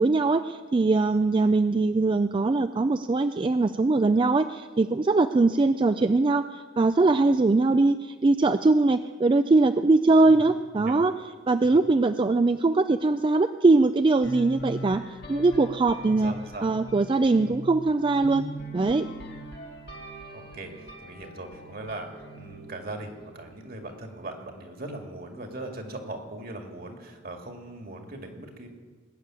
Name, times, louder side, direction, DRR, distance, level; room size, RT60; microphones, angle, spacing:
voice 1, 0.0-11.1 11.5-16.3 16.6-18.4 18.7-19.1, right 3 dB, 25° right, 10 dB, 0.3 m, -22 dB
sound 1, 14.2-24.0, right 1 dB, 60° left, 2.3 m, -41 dB
voice 2, 16.1-16.7 20.3-28.7, right 2 dB, 55° right, 3 dB, 2.1 m, -39 dB
20.0 x 6.8 x 8.9 m, 1.5 s
head